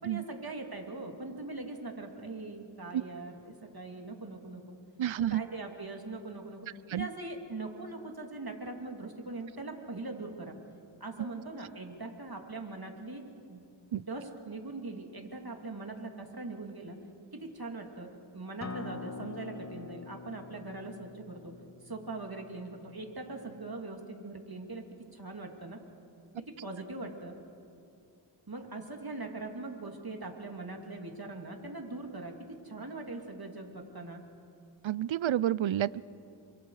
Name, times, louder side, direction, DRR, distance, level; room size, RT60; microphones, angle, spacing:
voice 1, 0.0-4.8 5.3-6.6 6.9-10.6 11.0-13.2 13.5-13.6 13.9-17.0 17.3-18.1 18.3-21.5 21.8-24.8 25.1-25.8 26.5-27.3 28.5-34.2, right 2 dB, 50° right, 3 dB, 2.8 m, -41 dB
voice 2, 5.0-5.4 6.9-7.1 13.9-14.0 34.8-36.0, right 11 dB, 85° right, 20 dB, 0.5 m, -29 dB
Acoustic guitar, 18.6-23.8, left 4 dB, 35° left, 0.9 m, -45 dB
28.5 x 25.0 x 4.9 m, 2.6 s
wide cardioid pair, 40°, 46 cm